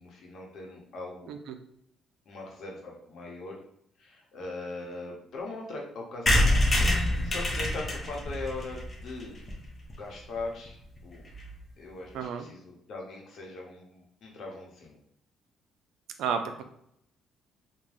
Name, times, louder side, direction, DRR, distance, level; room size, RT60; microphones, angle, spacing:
voice 1, 0.0-1.4 2.3-3.6 4.0-9.5 9.9-11.3 11.8-15.0, left 2 dB, 65° left, -1 dB, 0.8 m, -40 dB
sound 1, 6.3-9.9 10.4-10.5 10.7-10.8 11.0-11.1 11.3-11.5, left 1 dB, 35° left, 0.7 m, -26 dB
voice 2, 12.1-12.5 16.2-16.6, right 6 dB, 80° right, 7 dB, 0.3 m, -31 dB
3.2 x 2.1 x 2.6 m, 0.72 s
cardioid pair, 90°, 0 cm